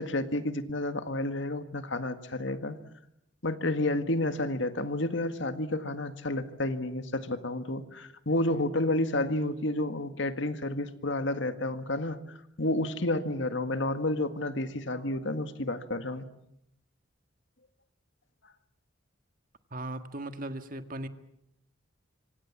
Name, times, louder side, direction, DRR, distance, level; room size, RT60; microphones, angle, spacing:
voice 1, 0.0-2.8 3.4-12.2 12.6-16.3, left 1 dB, 65° left, 10 dB, 1.8 m, -30 dB
voice 2, 19.7-21.1, right 1 dB, 45° right, 9 dB, 1.7 m, -37 dB
26.5 x 25.5 x 7.4 m, 0.77 s
head